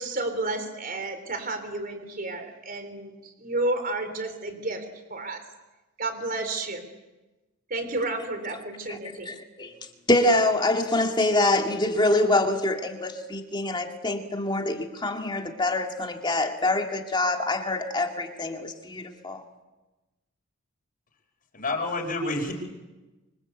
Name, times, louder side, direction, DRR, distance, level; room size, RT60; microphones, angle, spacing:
voice 1, 0.0-4.8 5.1-5.4 6.0-6.8 7.7-9.3, right 2 dB, 45° right, 3.9 m, -31 dB
voice 2, 9.3-9.7 10.1-19.4, left 2 dB, 20° left, 2.3 m, -25 dB
voice 3, 21.5-22.5, left 2 dB, 45° left, 5.1 m, -28 dB
26.0 x 26.0 x 8.3 m
head